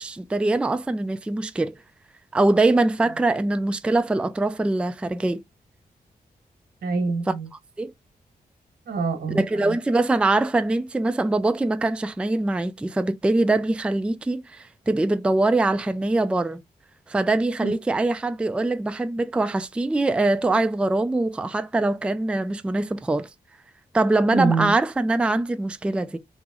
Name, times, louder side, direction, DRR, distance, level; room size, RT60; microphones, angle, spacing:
voice 1, 0.0-1.7 2.3-5.4 7.8-7.9 9.3-16.6 17.1-23.3 23.9-26.2, right 2 dB, 5° right, 0.3 m, -23 dB
voice 2, 6.8-7.5 8.9-9.8 17.6-17.7 24.3-24.7, right 4 dB, 85° right, 1.2 m, -25 dB
3.0 x 2.0 x 3.6 m
cardioid pair, 65°, 16 cm